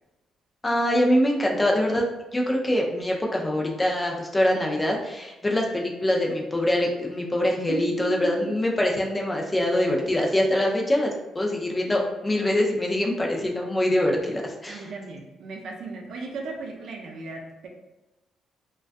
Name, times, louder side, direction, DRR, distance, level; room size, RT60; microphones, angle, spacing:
voice 1, 0.6-2.1 2.3-14.8, left 1 dB, 20° left, 0 dB, 0.4 m, -24 dB
voice 2, 7.7-8.5 14.7-17.7, right 4 dB, 70° right, 1 dB, 0.4 m, -36 dB
2.2 x 2.2 x 2.5 m, 1.0 s
cardioid pair, 90°, 0 cm